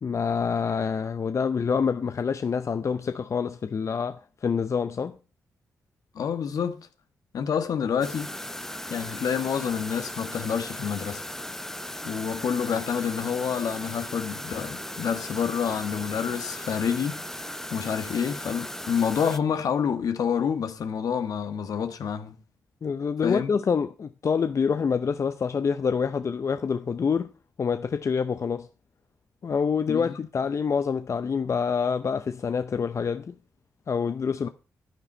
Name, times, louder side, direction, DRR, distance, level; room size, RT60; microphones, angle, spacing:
voice 1, 0.0-5.2 22.8-27.3 27.6-28.7 29.4-33.3 33.9-34.5, left 6 dB, 50° left, 0.6 m, -26 dB
voice 2, 6.1-6.9 7.3-8.3 8.9-11.2 12.0-17.2 17.7-22.4 23.2-23.5 29.9-30.2, left 7 dB, 70° left, 1.5 m, -28 dB
sound 1, 8.0-19.4, left 1 dB, 5° left, 0.7 m, -37 dB
10.5 x 9.9 x 4.4 m
cardioid pair, 60°, 6 cm